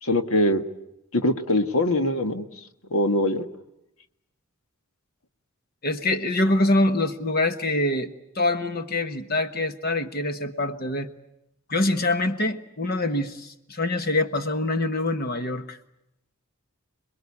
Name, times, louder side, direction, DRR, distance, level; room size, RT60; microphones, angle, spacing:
voice 1, 0.0-0.6 1.1-2.5 2.9-3.4, left 1 dB, 70° left, 7 dB, 1.7 m, -22 dB
voice 2, 5.8-8.1 8.3-11.1 11.7-15.8, left 2 dB, 45° left, 8 dB, 1.3 m, -25 dB
27.0 x 22.0 x 8.5 m, 0.84 s
head